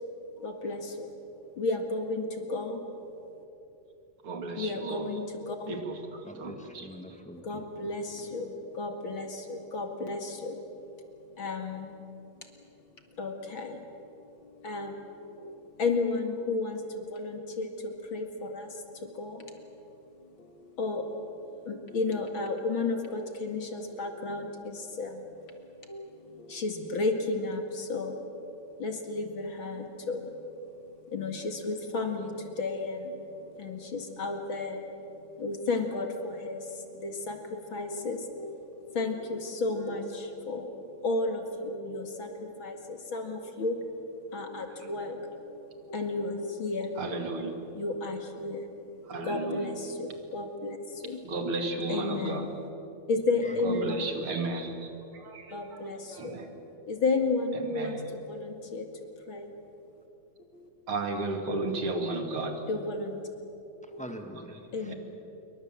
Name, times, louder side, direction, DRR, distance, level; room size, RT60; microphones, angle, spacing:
voice 1, 0.4-1.1 1.4-2.8 4.6-5.8 7.4-11.0 11.3-12.0 13.1-13.9 14.2-19.6 20.2-25.3 25.9-28.5 28.8-34.8 35.4-43.9 44.3-47.0 47.7-48.7 49.2-51.6 51.9-52.5 53.1-54.1 55.5-56.4 56.9-58.9 59.3-59.5 60.5-60.7 62.4-63.3 63.9-64.1 64.7-64.9, left 3 dB, 45° left, 5 dB, 2.4 m, -33 dB
voice 2, 4.2-5.1 5.7-6.9 47.0-47.5 49.0-49.8 51.2-52.5 53.6-54.9 55.2-55.8 56.1-56.5 57.5-58.0 60.9-62.7 64.9-65.0, right 3 dB, 45° right, 5 dB, 2.8 m, -34 dB
voice 3, 6.2-8.3 53.4-53.9 63.8-64.9, equal, 10° left, 4 dB, 0.4 m, -45 dB
27.5 x 23.5 x 7.6 m, 2.9 s
omnidirectional pair, 3.7 m